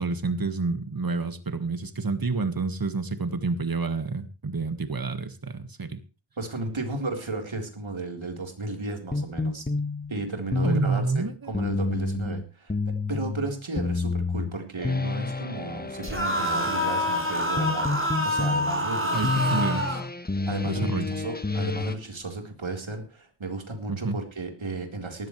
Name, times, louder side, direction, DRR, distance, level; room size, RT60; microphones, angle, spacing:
voice 1, 0.0-6.0 10.6-11.6 19.1-20.0 20.7-21.1 23.9-24.2, right 4 dB, 45° right, 10 dB, 1.8 m, -29 dB
voice 2, 6.4-9.6 10.1-19.6 20.5-25.3, right 3 dB, 65° right, 3 dB, 4.2 m, -34 dB
sound 1, 9.1-22.0, left 3 dB, 20° left, 1.2 m, -29 dB
sound 2, 16.0-20.0, equal, 25° right, 5.8 m, -27 dB
18.5 x 13.5 x 3.3 m, 0.32 s
cardioid pair, 45°, 49 cm